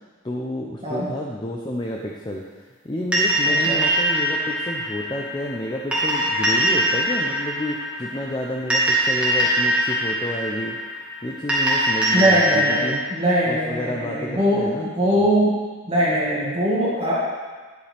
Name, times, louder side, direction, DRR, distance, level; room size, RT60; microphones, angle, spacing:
voice 1, 0.2-10.8 11.2-12.9 13.5-15.3, left 1 dB, 20° left, -1 dB, 0.6 m, -30 dB
sound 1, 3.1-12.9, right 1 dB, 5° right, 1.7 m, -22 dB
voice 2, 3.5-3.8 12.1-14.6 14.9-15.6 15.9-17.3, equal, 30° right, -8 dB, 1.8 m, -21 dB
9.8 x 8.1 x 3.5 m, 1.4 s
head